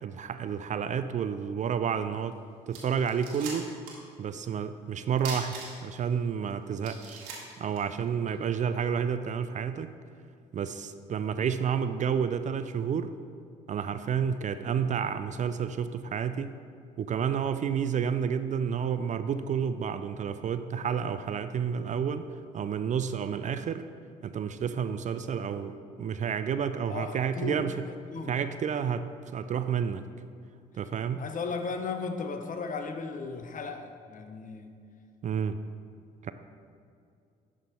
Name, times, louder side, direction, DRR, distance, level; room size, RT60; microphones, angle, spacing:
voice 1, 0.0-2.4 2.7-3.7 4.2-7.2 7.6-9.9 10.5-13.1 13.7-16.6 17.0-23.9 24.2-27.8 28.3-29.0 29.3-30.1 30.7-31.2 35.2-35.6 36.2-36.3, right 7 dB, 40° right, 11 dB, 0.4 m, -30 dB
sound 1, 2.3-2.4 2.7-4.1 4.4-4.5 5.2-6.1 6.5-6.6 6.8-8.4, right 4 dB, 90° right, 1.3 m, -41 dB
voice 2, 26.9-28.4 31.2-34.8, left 4 dB, 45° left, 7 dB, 0.8 m, -36 dB
11.0 x 3.7 x 4.3 m, 2.4 s
hypercardioid pair, 55°, 19 cm